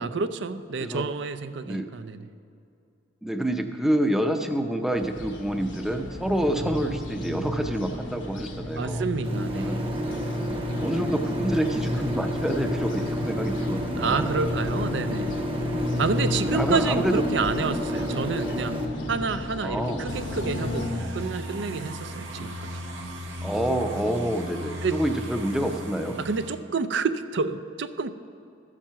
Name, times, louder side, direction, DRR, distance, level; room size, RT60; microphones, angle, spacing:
voice 1, 0.0-2.3 8.8-9.9 14.0-15.4 16.0-18.8 19.1-22.7 24.8-25.0 26.2-28.1, right 4 dB, 65° right, 11 dB, 0.5 m, -29 dB
voice 2, 3.2-9.0 9.5-9.8 10.8-14.4 16.3-17.8 19.6-20.1 23.4-26.2, right 1 dB, ahead, 5 dB, 0.6 m, -27 dB
sound 1, 4.9-20.9, left 1 dB, 80° left, 1.3 m, -33 dB
sound 2, 9.2-18.8, equal, 30° right, 1.0 m, -31 dB
sound 3, 20.1-26.6, equal, 90° right, 1.4 m, -36 dB
13.5 x 7.4 x 5.7 m, 2.6 s
head